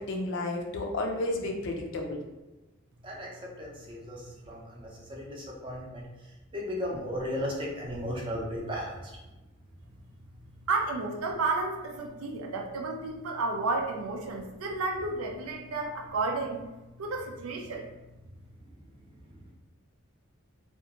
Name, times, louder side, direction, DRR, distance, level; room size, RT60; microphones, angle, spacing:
voice 1, 0.0-2.2, left 2 dB, 60° left, 2 dB, 0.4 m, -32 dB
voice 2, 3.6-4.2 4.5-6.0 6.5-8.9, equal, 25° right, -3 dB, 0.5 m, -35 dB
voice 3, 10.7-16.6 17.0-17.8, right 3 dB, 85° right, 1 dB, 0.5 m, -31 dB
2.5 x 2.2 x 2.9 m, 1.1 s
head